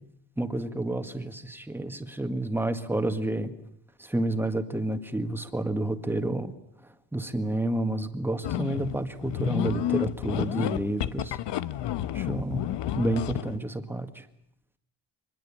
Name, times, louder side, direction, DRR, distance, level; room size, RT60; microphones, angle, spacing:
voice 1, 0.4-3.5 4.0-6.5 7.1-11.4 12.1-12.7 13.0-14.2, right 1 dB, 5° right, 7 dB, 1.9 m, -30 dB
sound 1, 8.4-13.6, left 13 dB, 85° left, 1.1 m, -30 dB
24.5 x 21.5 x 8.8 m, 0.72 s
cardioid pair, 145°, 41 cm